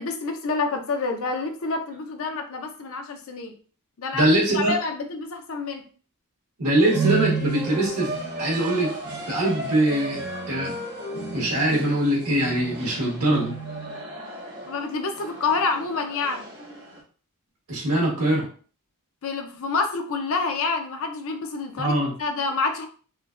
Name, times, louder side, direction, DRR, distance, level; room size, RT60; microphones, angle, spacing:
voice 1, 0.0-3.5 4.0-5.8 14.7-16.5 19.2-21.9 22.2-22.9, left 4 dB, 65° left, 5 dB, 0.6 m, -28 dB
voice 2, 4.1-4.7 6.6-8.9 9.3-10.2 10.5-10.7 11.3-13.5 17.7-18.4 21.8-22.1, right 1 dB, 85° right, -3 dB, 1.4 m, -22 dB
sound 1, 6.8-17.0, right 4 dB, 55° right, 1.3 m, -33 dB
3.7 x 2.2 x 2.4 m, 0.41 s
head